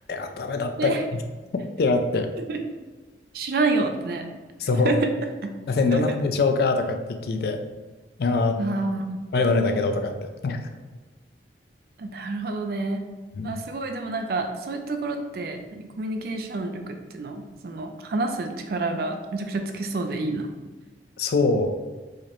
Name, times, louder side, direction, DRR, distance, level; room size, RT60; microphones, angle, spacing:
voice 1, 0.1-1.2 1.8-2.3 4.6-5.0 5.7-7.6 8.2-8.6 9.3-10.7 13.4-13.5 21.2-21.8, left 3 dB, 60° left, 6 dB, 0.3 m, -23 dB
voice 2, 3.3-4.2 4.8-5.1 5.4-5.5 5.9-6.0 8.6-9.2 12.0-13.0 13.4-20.5, right 3 dB, 55° right, 5 dB, 0.4 m, -28 dB
4.7 x 2.1 x 2.9 m, 1.3 s
head